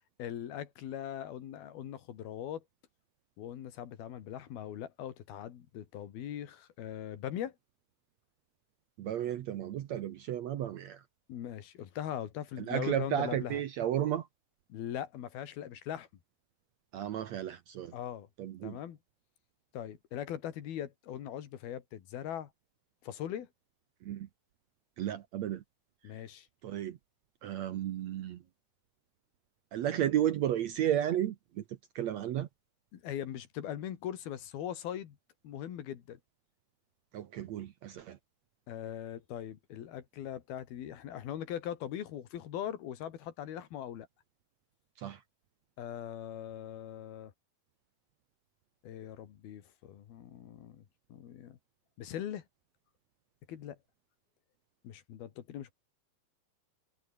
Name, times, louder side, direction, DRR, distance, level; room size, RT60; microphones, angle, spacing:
voice 1, 0.2-2.6 3.4-7.5 11.3-13.6 14.7-16.1 17.9-18.3 18.6-19.0 19.7-22.5 23.0-23.5 26.0-26.5 32.9-35.2 35.4-36.2 38.7-44.1 45.8-47.3 48.8-50.8 51.1-51.6 52.0-52.4 53.5-53.8 54.8-55.7, left 10 dB, 85° left, 4.0 m, -40 dB
voice 2, 9.0-11.0 12.6-14.3 16.9-17.9 18.4-18.8 24.0-24.3 25.0-25.6 26.6-27.0 27.4-28.4 29.7-31.6 31.9-32.5 37.1-38.2 45.0-45.2, right 11 dB, 70° right, 1.8 m, -33 dB
omnidirectional pair, 4.2 m